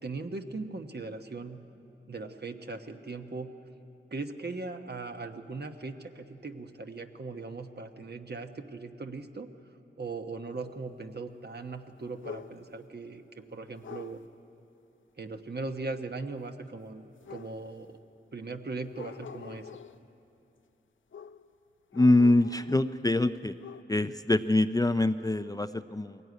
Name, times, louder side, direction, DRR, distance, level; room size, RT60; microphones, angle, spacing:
voice 1, 0.0-1.6 2.1-3.5 4.1-9.5 10.0-14.2 15.2-18.0 18.3-19.7, right 3 dB, 50° right, 6 dB, 1.2 m, -39 dB
sound 1, 12.2-12.8 13.8-14.3 17.2-17.9 18.9-20.0 21.1-21.5 21.9-23.0 23.3-23.8, left 7 dB, 70° left, 0.5 m, -46 dB
voice 2, 21.9-23.5 23.9-26.2, left 2 dB, 15° left, 11 dB, 0.4 m, -24 dB
22.0 x 16.5 x 9.5 m, 2.9 s
wide cardioid pair, 70°, 21 cm